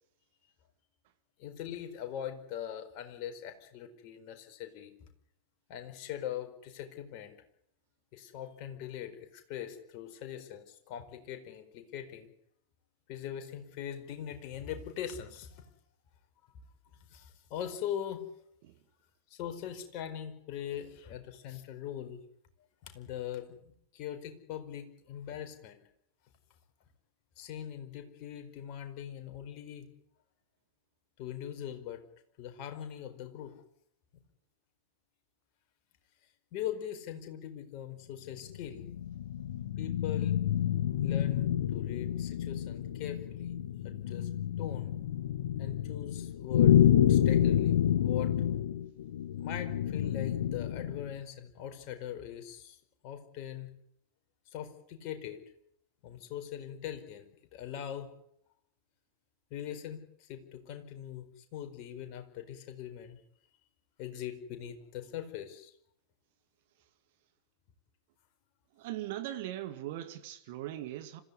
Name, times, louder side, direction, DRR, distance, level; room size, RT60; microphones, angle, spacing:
voice 1, 1.4-4.9 5.7-7.4 8.1-12.3 13.1-15.7 17.1-18.2 19.3-22.2 22.8-25.8 27.4-29.8 31.2-32.0 32.4-33.6 36.5-38.9 39.8-40.3 41.0-43.6 43.8-44.3 44.6-44.9 45.6-46.8 47.1-48.3 49.4-52.8 53.0-53.7 54.5-55.4 56.0-57.3 57.5-58.1 59.5-63.2 64.0-65.7, left 10 dB, 45° left, 4.6 m, -41 dB
sound 1, 38.5-51.1, left 10 dB, 60° left, 1.2 m, -28 dB
voice 2, 68.7-71.2, right 13 dB, 50° right, 2.0 m, -39 dB
26.0 x 15.5 x 9.9 m
figure-of-eight pair, 90°, 0 cm